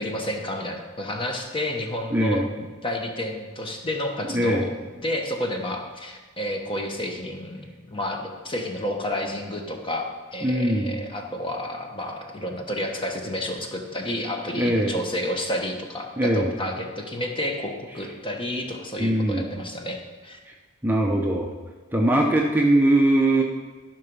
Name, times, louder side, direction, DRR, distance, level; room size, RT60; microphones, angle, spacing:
voice 1, 0.0-20.4, left 1 dB, 25° left, 3 dB, 1.1 m, -30 dB
voice 2, 2.1-2.4 4.3-4.6 10.4-11.0 14.5-14.9 16.2-16.5 19.0-19.5 20.8-21.5 21.9-23.4, right 1 dB, 10° right, 0 dB, 0.7 m, -21 dB
13.0 x 6.0 x 5.4 m, 1.4 s
head